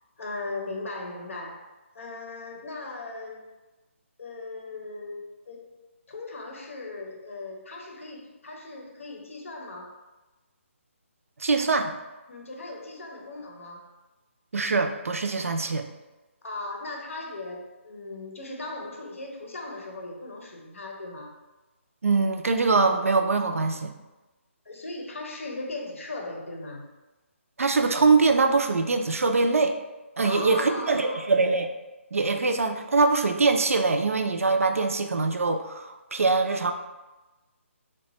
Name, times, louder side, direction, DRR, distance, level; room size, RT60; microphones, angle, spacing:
voice 1, 0.2-1.7 1.9-3.5 4.2-5.7 6.1-10.0 12.3-13.9 16.4-21.3 24.7-26.8 30.2-31.3, left 2 dB, 70° left, 1 dB, 0.6 m, -38 dB
voice 2, 11.4-11.9 14.5-15.9 22.0-23.9 27.6-29.8 30.2-31.7 32.1-36.7, right 3 dB, 90° right, 6 dB, 0.3 m, -23 dB
2.9 x 2.2 x 2.8 m, 1.1 s
hypercardioid pair, 155°, 7 cm